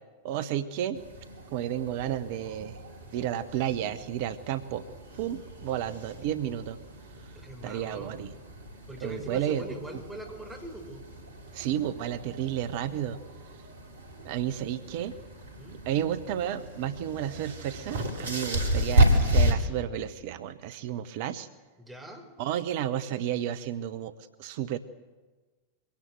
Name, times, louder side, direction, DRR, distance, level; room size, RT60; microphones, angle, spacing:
voice 1, 0.2-1.0 1.5-2.8 3.1-4.8 5.2-6.8 7.6-8.3 9.0-9.6 11.5-13.2 14.2-15.2 15.9-21.5 22.4-24.1 24.4-24.8, right 11 dB, 50° right, 12 dB, 1.0 m, -32 dB
sound 1, 0.9-19.5, right 1 dB, 65° right, 3.0 m, -32 dB
voice 2, 7.3-8.2 8.9-11.0 15.6-15.8 21.8-22.3, equal, 5° right, 2 dB, 4.6 m, -41 dB
23.0 x 17.5 x 7.8 m, 1.3 s
figure-of-eight pair, 90°, 0 cm